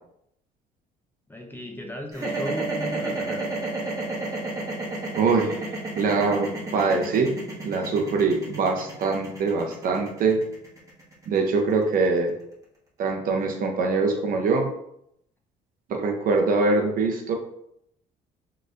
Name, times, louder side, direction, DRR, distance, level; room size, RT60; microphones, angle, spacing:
voice 1, 1.3-3.5, left 1 dB, 10° left, 2 dB, 0.6 m, -35 dB
sound 1, 2.1-12.3, right 2 dB, 20° right, 1.2 m, -31 dB
voice 2, 5.1-5.6 6.0-7.4 7.6-10.4 11.3-12.3 13.0-14.7 15.9-17.4, right 4 dB, 55° right, 2 dB, 0.7 m, -23 dB
4.3 x 3.1 x 2.6 m, 0.76 s
cardioid pair, 110°, 17 cm